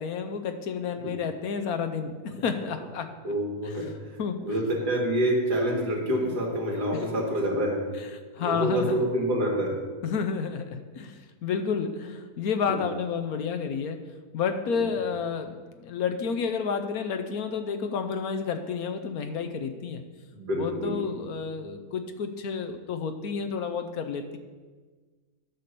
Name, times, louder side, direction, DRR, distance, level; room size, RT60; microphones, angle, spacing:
voice 1, 0.0-3.1 3.6-3.8 4.2-4.4 6.9-7.0 8.3-9.0 10.0-14.0 14.3-20.0 20.5-24.4, left 6 dB, 70° left, 7 dB, 1.1 m, -30 dB
voice 2, 3.2-7.8 8.4-9.7 12.7-12.8 14.7-14.9 20.3-21.0, right 1 dB, 75° right, -2 dB, 2.7 m, -27 dB
10.5 x 5.7 x 6.7 m, 1.4 s
omnidirectional pair, 1.7 m